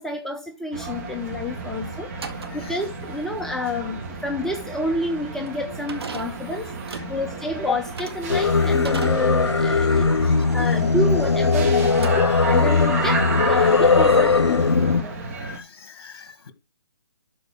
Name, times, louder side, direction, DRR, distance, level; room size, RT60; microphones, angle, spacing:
voice 1, 0.0-2.1 2.5-6.7 7.1-15.2, left 2 dB, 5° left, 0.6 m, -29 dB
sound 1, 0.7-15.6, right 4 dB, 35° right, 2.4 m, -32 dB
voice 2, 2.1-2.8 6.9-7.2 10.1-10.8 11.8-12.1 14.1-14.8 15.1-16.5, left 6 dB, 55° left, 1.7 m, -46 dB
sound 2, 2.1-11.5 11.8-12.8, right 5 dB, 70° right, 1.9 m, -40 dB
Singing, 8.3-15.0, left 4 dB, 90° left, 0.7 m, -19 dB
12.5 x 4.6 x 6.0 m
figure-of-eight pair, 150°, 14 cm